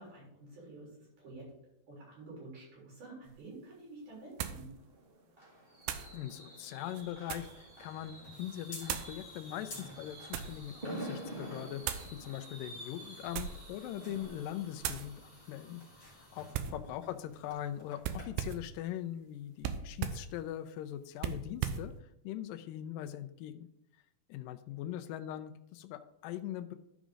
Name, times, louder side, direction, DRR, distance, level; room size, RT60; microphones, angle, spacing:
voice 1, 0.0-1.5 1.9-4.7 16.6-16.8, right 2 dB, 65° right, -5 dB, 5.1 m, -50 dB
sound 1, 3.3-3.4 4.4-4.7 5.8-6.1 6.9-7.6 8.8-9.2 9.9-10.6 11.8-12.1 13.2-13.7 14.1-14.4 14.8-15.1 16.5-16.8 18.0-18.7 19.6-20.3 21.2-21.9, right 9 dB, 90° right, 2.3 m, -38 dB
Fireworks, 4.7-16.4 16.8-17.1 17.3-17.4, right 1 dB, 25° right, 1.5 m, -48 dB
voice 2, 6.1-21.9 22.2-23.7 24.3-26.7, left 12 dB, 85° left, 9 dB, 2.2 m, -41 dB
sound 2, 7.3-18.2, left 1 dB, 40° left, 3.6 m, -54 dB
12.5 x 5.0 x 3.8 m, 0.80 s
omnidirectional pair, 3.9 m